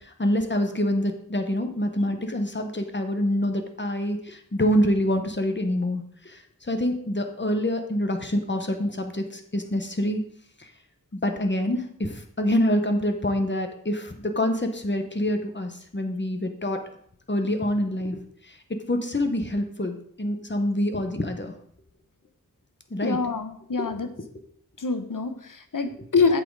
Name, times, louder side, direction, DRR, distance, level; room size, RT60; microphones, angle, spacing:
voice 1, 0.2-6.4 6.7-10.2 11.2-16.8 17.3-18.2 18.9-21.5 22.9-23.2, left 1 dB, 35° left, 6 dB, 1.3 m, -26 dB
voice 2, 23.0-24.1 24.8-26.4, left 4 dB, 70° left, 8 dB, 1.0 m, -25 dB
8.4 x 7.8 x 4.0 m, 0.64 s
wide cardioid pair, 50°, 33 cm